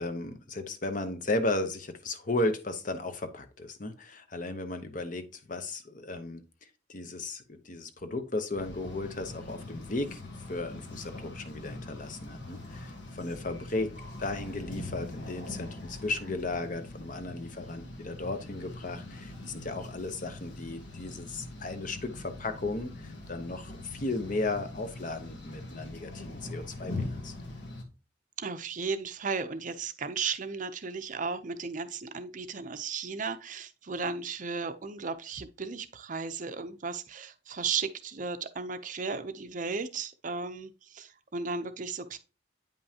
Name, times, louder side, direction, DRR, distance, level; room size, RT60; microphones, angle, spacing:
voice 1, 0.0-6.4 6.9-10.2 10.5-27.3, left 2 dB, 40° left, 0.9 m, -35 dB
sound 1, 8.5-27.8, left 2 dB, 65° left, 1.3 m, -42 dB
voice 2, 28.4-42.2, right 5 dB, 40° right, 0.6 m, -35 dB
9.0 x 5.4 x 2.8 m
head